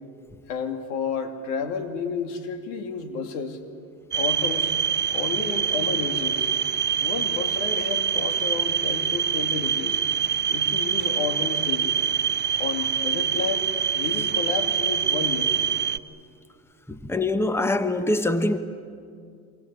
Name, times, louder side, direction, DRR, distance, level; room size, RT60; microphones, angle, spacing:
voice 1, 0.5-3.6 4.1-4.7 5.1-6.5 7.0-10.0 10.5-12.0 12.6-15.6, left 5 dB, 75° left, 2.9 m, -31 dB
sound 1, 4.1-16.0, right 8 dB, 25° right, 0.9 m, -25 dB
voice 2, 16.9-18.6, left 2 dB, 5° left, 1.4 m, -24 dB
26.5 x 25.5 x 8.6 m
hypercardioid pair, 80°, 46 cm